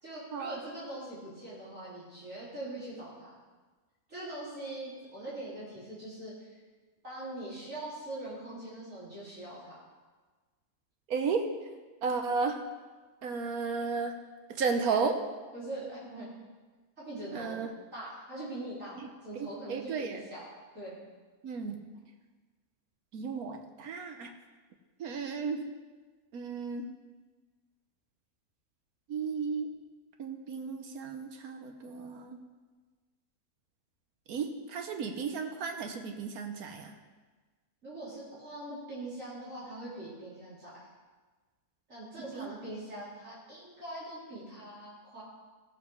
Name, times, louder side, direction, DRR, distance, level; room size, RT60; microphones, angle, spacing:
voice 1, 0.0-3.3 4.1-6.6 7.0-9.8 15.5-16.3 17.0-17.6 17.9-20.4 20.7-21.0 37.8-40.8 41.9-45.2, right 1 dB, 60° right, -10 dB, 4.2 m, -42 dB
voice 2, 11.1-11.5 12.0-12.6 13.2-14.2 14.6-15.2 17.3-17.7 19.7-20.2 21.4-21.8 23.1-24.3 25.0-25.6 26.3-26.9 29.1-29.7 30.2-32.4 34.3-36.9 42.3-42.5, right 5 dB, 80° right, 5 dB, 1.4 m, -33 dB
15.0 x 7.5 x 4.7 m, 1.3 s
omnidirectional pair, 1.5 m